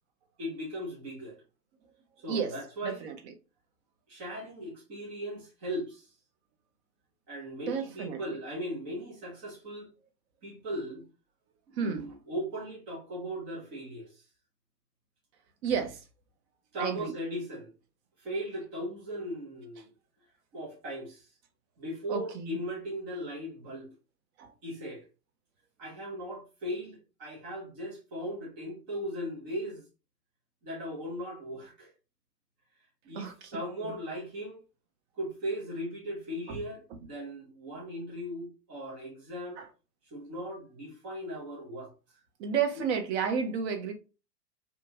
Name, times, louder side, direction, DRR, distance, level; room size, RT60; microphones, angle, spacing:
voice 1, 0.4-1.4 2.2-3.1 4.1-6.1 7.3-9.9 10.4-11.0 11.7-14.2 16.7-17.7 18.2-19.9 20.5-21.3 21.8-23.9 24.6-25.1 25.8-29.8 30.6-31.9 33.0-34.6 35.1-39.6 40.1-41.9, equal, 15° right, 0.3 m, -38 dB
voice 2, 2.8-3.1 7.7-8.2 11.8-12.0 15.6-16.0 16.8-17.1 22.1-22.6 24.4-24.5 33.2-33.5 33.8-33.9 39.6-39.7 42.4-43.9, right 7 dB, 40° right, 0.7 m, -31 dB
2.7 x 2.3 x 2.7 m
figure-of-eight pair, 105°, 50 cm